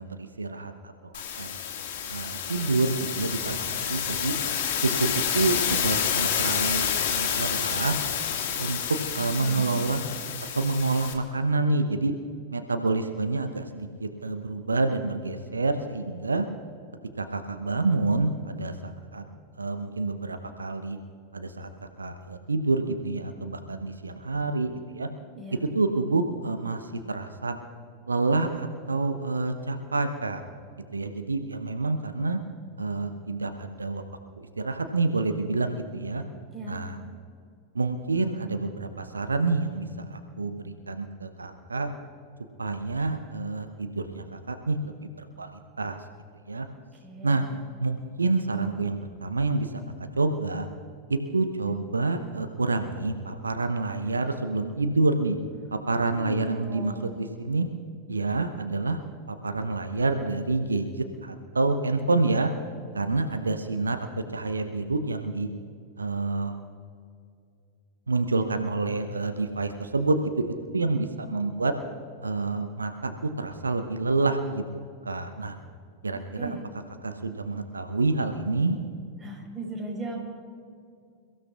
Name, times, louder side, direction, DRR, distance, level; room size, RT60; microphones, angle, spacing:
voice 1, 0.0-1.6 2.1-4.3 4.8-8.0 8.6-8.8 9.1-10.0 10.5-12.1 12.5-16.5 17.2-19.2 19.6-21.0 21.3-21.7 22.0-25.1 25.5-27.6 28.1-30.4 30.9-32.4 32.8-34.0 34.4-36.2 36.7-37.0 37.7-41.9 42.6-45.5 45.8-46.0 46.5-46.7 47.2-47.4 47.8-49.7 50.2-50.7 51.1-55.4 55.7-57.6 58.1-59.0 59.3-60.9 61.2-62.5 62.9-65.5 66.0-66.6 68.1-70.5 70.7-71.7 72.2-74.6 75.0-75.5 76.0-76.6 77.0-78.8, right 3 dB, 75° right, 7 dB, 0.8 m, -28 dB
sound 1, 1.1-11.1, left 8 dB, 50° left, 2.0 m, -29 dB
voice 2, 9.2-9.8 25.3-25.6 36.5-36.8 46.9-47.4 56.1-57.1 76.1-76.6 79.2-80.2, right 1 dB, 10° right, -2 dB, 4.6 m, -38 dB
28.5 x 15.5 x 2.5 m, 2.3 s
figure-of-eight pair, 90°, 0 cm